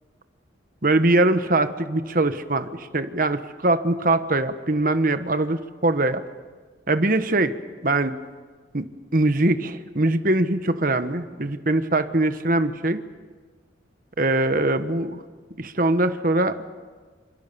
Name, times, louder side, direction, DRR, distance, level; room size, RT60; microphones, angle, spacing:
voice 1, 0.8-6.2 6.9-7.5 7.8-8.2 8.7-8.9 9.1-13.0 14.2-15.2 15.6-16.6, right 2 dB, 45° right, 10 dB, 1.3 m, -22 dB
28.0 x 25.5 x 7.0 m, 1.5 s
head